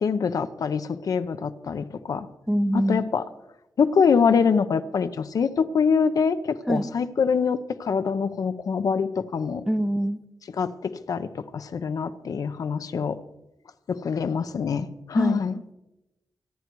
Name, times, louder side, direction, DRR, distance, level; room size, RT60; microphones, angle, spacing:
voice 1, 0.0-2.3 2.9-3.2 3.8-9.6 10.6-13.2 13.9-15.6, left 6 dB, 65° left, 11 dB, 0.8 m, -24 dB
voice 2, 2.5-3.0 6.7-6.9 9.7-10.2 15.2-15.4, equal, 5° right, 12 dB, 0.6 m, -24 dB
25.0 x 9.5 x 4.6 m, 0.94 s
wide cardioid pair, 150°, 7 cm